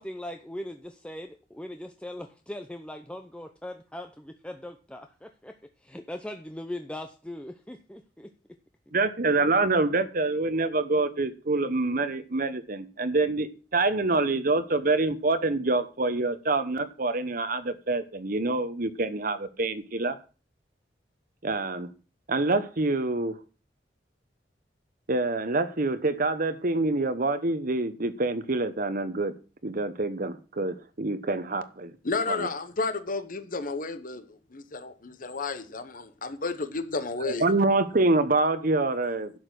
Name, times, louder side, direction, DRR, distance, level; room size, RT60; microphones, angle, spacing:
voice 1, 0.0-8.3, left 1 dB, 5° left, 0.7 m, -40 dB
voice 2, 8.9-20.1 21.4-21.9 22.3-23.4 25.1-29.3 29.6-31.9 32.3-32.5 37.4-39.3, right 2 dB, 50° right, 1.0 m, -26 dB
voice 3, 32.0-37.4, left 3 dB, 50° left, 1.1 m, -32 dB
11.5 x 7.3 x 6.2 m
head